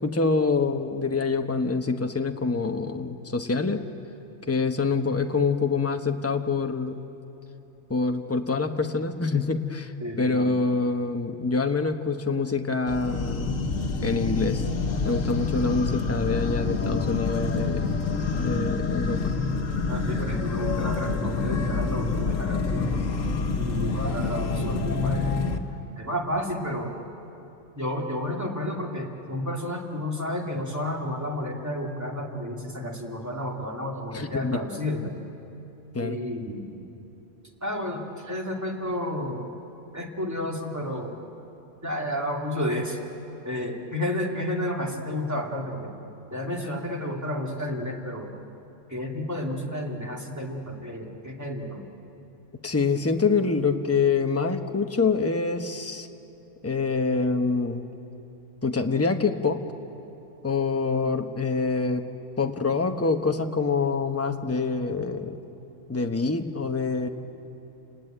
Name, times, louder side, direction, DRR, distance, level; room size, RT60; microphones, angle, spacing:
voice 1, 0.0-3.9 4.5-7.0 7.9-9.9 10.2-13.6 14.0-14.6 15.0-17.9 18.3-19.3 34.1-34.6 35.9-36.2 52.6-56.1 56.6-57.8 58.6-59.6 60.4-62.0 62.4-65.4 65.9-67.1, left 4 dB, 15° left, 5 dB, 1.0 m, -26 dB
voice 2, 10.0-10.6 19.9-23.0 23.5-25.4 26.0-26.9 27.8-35.1 36.0-36.7 37.6-39.5 39.9-41.1 41.8-43.0 43.4-45.9 46.3-48.3 48.9-51.9, left 1 dB, 15° right, -1 dB, 2.6 m, -31 dB
sound 1, 12.9-25.6, left 4 dB, 85° left, 1.6 m, -27 dB
29.5 x 19.5 x 9.0 m, 3.0 s
omnidirectional pair, 1.3 m